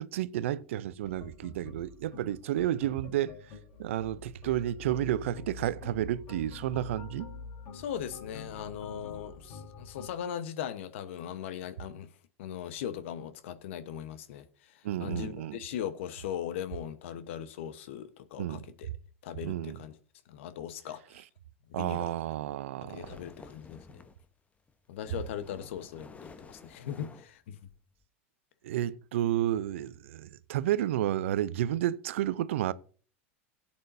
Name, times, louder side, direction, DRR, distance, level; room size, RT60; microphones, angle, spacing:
voice 1, 0.0-3.3 3.8-7.3 14.8-15.6 18.4-18.6 19.4-19.8 21.7-23.2 28.6-32.7, right 12 dB, 75° right, 0.6 m, -31 dB
sound 1, 1.0-10.1, left 4 dB, 55° left, 4.4 m, -46 dB
voice 2, 7.7-12.1 12.4-18.9 19.2-20.0 20.3-21.2 21.7-22.1 22.8-24.0 24.9-27.6, left 9 dB, 70° left, 1.1 m, -39 dB
sound 2, 23.0-24.3 24.7-28.0, left 4 dB, 20° left, 1.0 m, -52 dB
17.0 x 8.7 x 2.7 m
hypercardioid pair, 95°, 7 cm